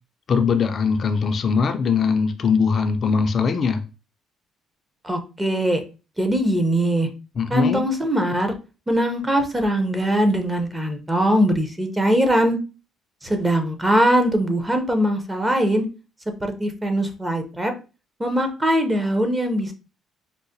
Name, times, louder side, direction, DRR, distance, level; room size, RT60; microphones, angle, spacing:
voice 1, 0.3-3.8 7.4-7.8, left 5 dB, 45° left, 0.4 m, -21 dB
voice 2, 5.0-5.8 6.2-7.1 7.5-8.5 8.9-12.6 13.2-15.8 16.4-17.7 18.2-19.7, equal, 15° right, 0.7 m, -21 dB
4.7 x 2.1 x 2.7 m
cardioid pair, 100°, 0 cm